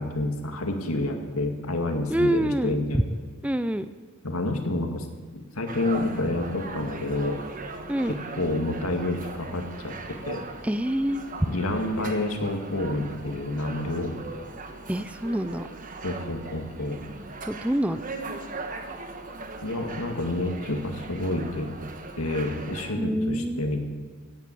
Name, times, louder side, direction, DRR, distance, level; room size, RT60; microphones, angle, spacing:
voice 1, 0.0-3.0 4.2-5.1 5.6-7.4 8.1-10.4 11.5-14.1 16.0-17.0 19.6-21.7 22.2-23.9, left 1 dB, 85° left, 4 dB, 2.1 m, -29 dB
voice 2, 2.1-2.8 3.4-3.9 7.9-8.2 10.6-11.2 14.9-15.7 17.4-18.0 23.0-23.6, equal, 5° right, 12 dB, 0.4 m, -26 dB
sound 1, 5.7-22.9, right 3 dB, 40° right, 1.4 m, -39 dB
16.5 x 9.4 x 8.4 m, 1.4 s
head